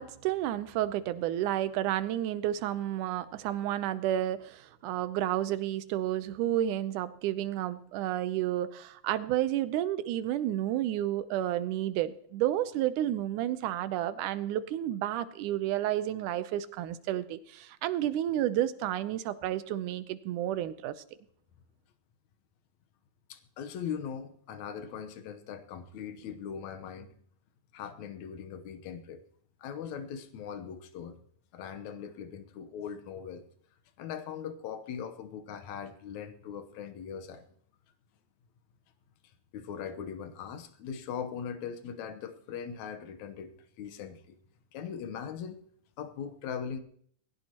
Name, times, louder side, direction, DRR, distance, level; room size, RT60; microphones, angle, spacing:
voice 1, 0.0-21.0, right 12 dB, 80° right, 13 dB, 2.2 m, -31 dB
voice 2, 23.3-27.2 27.7-29.2 29.6-31.2 31.5-33.4 34.0-37.4 39.5-44.4 44.7-45.6 46.0-46.8, left 7 dB, 70° left, 9 dB, 2.2 m, -40 dB
20.0 x 16.5 x 3.0 m, 0.63 s
omnidirectional pair, 3.7 m